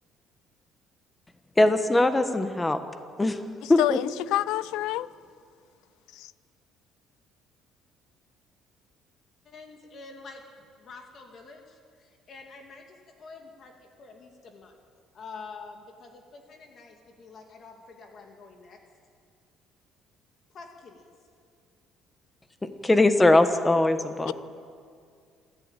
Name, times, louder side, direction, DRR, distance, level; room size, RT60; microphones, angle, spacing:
voice 1, 1.6-2.8 3.2-3.4 3.7-4.0 22.6-24.3, left 2 dB, 10° left, 9 dB, 1.3 m, -21 dB
voice 2, 3.6-5.1 6.1-6.3 24.3-24.4, left 15 dB, 85° left, 18 dB, 0.6 m, -28 dB
voice 3, 9.4-10.4 10.8-14.7 15.1-18.8 20.5-21.0, left 4 dB, 40° left, 3 dB, 2.5 m, -47 dB
27.0 x 13.0 x 9.1 m, 2.2 s
cardioid pair, 150°, 0 cm